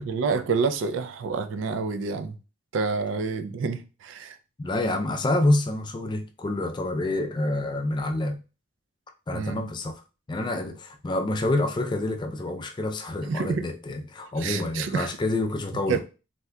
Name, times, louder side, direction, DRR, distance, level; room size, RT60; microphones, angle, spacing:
voice 1, 0.0-2.4 2.7-4.4 9.3-9.6 13.3-13.6 14.4-15.1 15.9-16.0, right 5 dB, 70° right, 0.3 m, -28 dB
voice 2, 4.6-8.4 9.3-10.0 10.3-16.0, left 2 dB, 25° left, 0.3 m, -27 dB
3.4 x 2.7 x 2.2 m
head